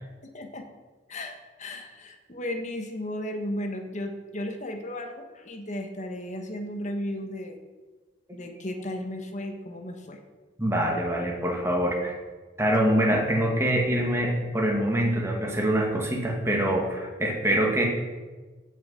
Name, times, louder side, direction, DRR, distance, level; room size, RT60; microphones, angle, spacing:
voice 1, 0.3-0.6 1.1-7.6 8.3-10.2, left 1 dB, 40° left, 5 dB, 1.4 m, -35 dB
voice 2, 10.6-12.1 12.6-17.8, right 1 dB, 15° right, 0 dB, 2.1 m, -24 dB
16.0 x 6.5 x 5.7 m, 1.3 s
head